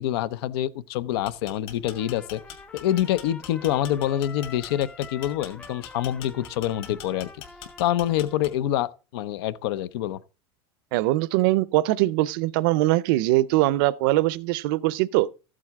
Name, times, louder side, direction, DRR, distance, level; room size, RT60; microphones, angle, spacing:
voice 1, 0.0-2.4 2.7-7.3 7.8-10.2, left 12 dB, 85° left, 0.6 m, -26 dB
sound 1, 1.1-8.8, left 9 dB, 45° left, 2.2 m, -42 dB
Trumpet, 1.8-8.6, left 4 dB, 10° left, 0.4 m, -46 dB
voice 2, 10.9-15.3, right 17 dB, 65° right, 0.5 m, -22 dB
13.5 x 7.6 x 3.6 m
cardioid pair, 170°, 13 cm